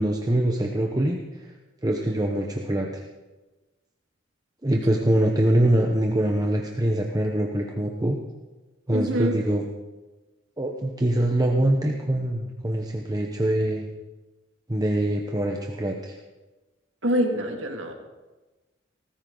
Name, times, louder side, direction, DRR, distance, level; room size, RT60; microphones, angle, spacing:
voice 1, 0.0-1.5 1.8-3.0 4.6-8.2 8.9-9.6 10.6-13.9 14.7-16.2, right 1 dB, 20° right, 1 dB, 1.0 m, -24 dB
voice 2, 8.9-9.3 17.0-17.9, equal, 80° right, 3 dB, 2.1 m, -25 dB
18.5 x 14.5 x 4.0 m, 1.2 s
head